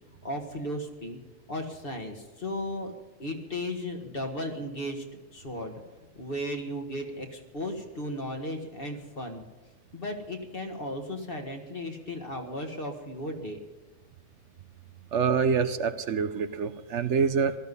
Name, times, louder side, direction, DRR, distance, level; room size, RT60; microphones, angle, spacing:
voice 1, 0.1-1.2 1.5-2.9 3.2-5.7 6.2-9.4 9.9-13.6, left 1 dB, 45° left, 3 dB, 2.0 m, -35 dB
voice 2, 15.1-17.6, right 6 dB, 65° right, 11 dB, 1.0 m, -26 dB
17.0 x 13.0 x 5.5 m, 1.2 s
omnidirectional pair, 1.3 m